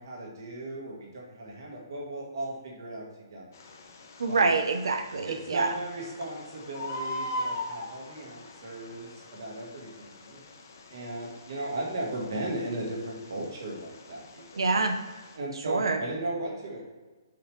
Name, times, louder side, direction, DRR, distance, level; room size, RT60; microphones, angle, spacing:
voice 1, 0.0-3.5 4.3-4.5 5.2-10.4 10.9-14.6 15.3-16.9, right 1 dB, 50° right, -2 dB, 1.6 m, -36 dB
Bird, 3.5-15.4, left 1 dB, 35° left, 0.8 m, -42 dB
voice 2, 4.2-5.7 14.6-15.0 15.7-16.0, right 4 dB, 75° right, 7 dB, 0.8 m, -26 dB
6.9 x 4.7 x 3.2 m, 1.3 s
hypercardioid pair, 175°, 3 cm